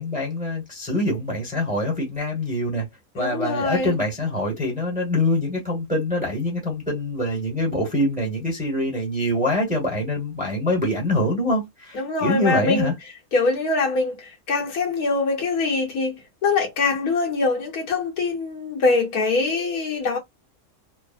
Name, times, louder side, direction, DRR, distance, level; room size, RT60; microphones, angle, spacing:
voice 1, 0.0-2.9 3.1-12.9, left 1 dB, 5° right, 0.9 m, -24 dB
voice 2, 3.2-3.9 11.9-12.9 13.3-20.2, left 3 dB, 70° left, 1.4 m, -23 dB
3.2 x 2.0 x 2.4 m
omnidirectional pair, 1.7 m